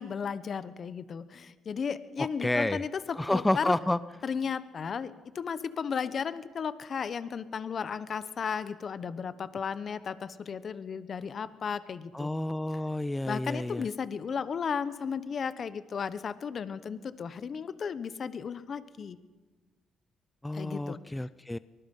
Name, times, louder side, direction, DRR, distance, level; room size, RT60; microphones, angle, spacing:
voice 1, 0.0-3.7 4.2-12.3 12.7-12.8 13.3-19.2 20.5-21.3, left 6 dB, 50° left, 14 dB, 1.2 m, -35 dB
voice 2, 2.2-2.8 3.2-4.0 12.1-13.8 20.4-21.6, left 1 dB, 10° left, 16 dB, 0.6 m, -30 dB
24.0 x 20.0 x 5.5 m, 1.3 s
cardioid pair, 90°, 0 cm